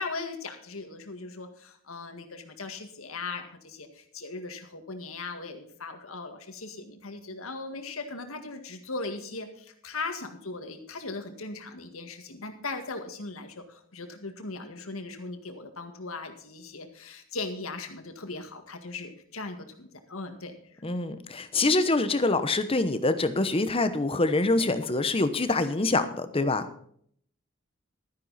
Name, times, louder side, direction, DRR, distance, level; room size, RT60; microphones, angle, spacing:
voice 1, 0.0-20.6, left 3 dB, 90° left, 6 dB, 1.9 m, -38 dB
voice 2, 20.8-26.7, left 2 dB, 25° left, 11 dB, 0.9 m, -25 dB
12.5 x 11.0 x 4.2 m, 0.63 s
head